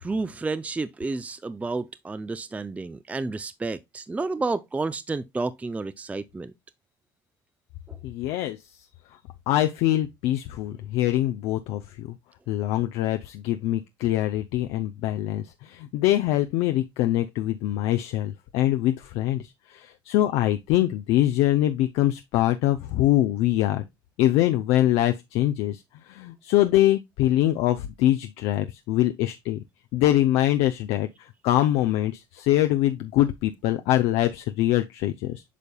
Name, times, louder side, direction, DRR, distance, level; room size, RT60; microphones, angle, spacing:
voice 1, 0.0-6.5 7.9-8.0, right 3 dB, 15° right, 0.4 m, -31 dB
voice 2, 8.0-8.6 9.5-12.1 12.5-19.4 19.7-23.8 24.2-25.8 26.1-29.6 29.9-35.4, left 14 dB, 70° left, 0.5 m, -23 dB
8.3 x 5.3 x 2.3 m
supercardioid pair, 80°, 10 cm